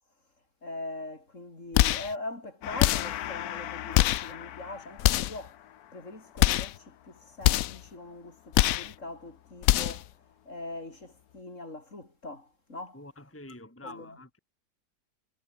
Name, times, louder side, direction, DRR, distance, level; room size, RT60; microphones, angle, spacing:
voice 1, 0.6-5.6 5.9-10.1 10.5-13.0 13.8-14.2, left 2 dB, 40° left, 4.7 m, -42 dB
sound 1, 1.7-2.1 2.8-3.2 3.9-4.3 5.0-5.4 6.4-6.8 7.4-7.8 8.5-8.9 9.6-10.1, left 15 dB, 85° left, 0.7 m, -24 dB
Gong, 2.6-9.6, left 12 dB, 60° left, 1.1 m, -41 dB
voice 2, 12.9-14.4, left 1 dB, 5° left, 2.5 m, -47 dB
omnidirectional pair, 2.0 m